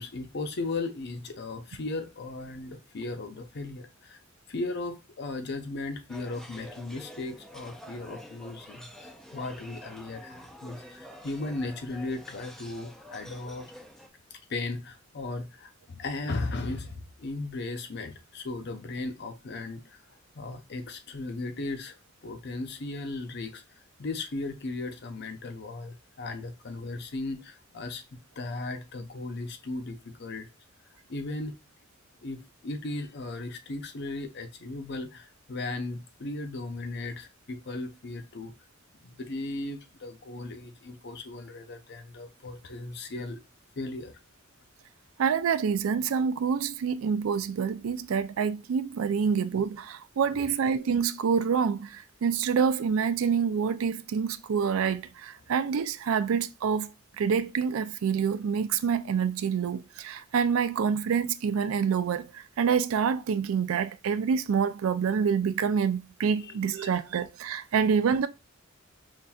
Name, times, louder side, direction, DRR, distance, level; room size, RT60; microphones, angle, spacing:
voice 1, 0.0-4.2 4.5-13.7 14.3-20.0 20.3-22.0 22.2-23.6 24.0-28.0 28.4-30.5 31.1-31.5 32.2-38.5 39.0-43.4 43.8-44.2 50.3-50.5 66.4-66.9, left 2 dB, 50° left, 0.6 m, -36 dB
sound 1, 6.1-14.1, equal, ahead, 0.4 m, -48 dB
voice 2, 45.2-56.9 57.2-68.3, right 6 dB, 75° right, 0.4 m, -27 dB
5.5 x 2.5 x 2.3 m
head